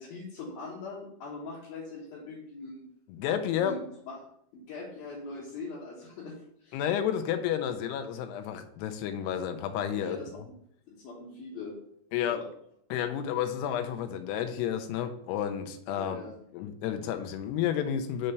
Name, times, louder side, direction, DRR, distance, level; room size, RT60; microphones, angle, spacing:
voice 1, 0.0-2.8 3.6-4.2 4.5-6.8 10.0-10.3 10.9-11.7 12.2-12.5 15.9-16.3, left 3 dB, 65° left, -6 dB, 2.9 m, -41 dB
voice 2, 3.1-3.8 6.7-10.5 12.1-12.4 12.9-16.2 16.5-18.3, left 9 dB, 80° left, 8 dB, 2.6 m, -31 dB
6.6 x 4.3 x 6.6 m, 0.70 s
omnidirectional pair, 5.0 m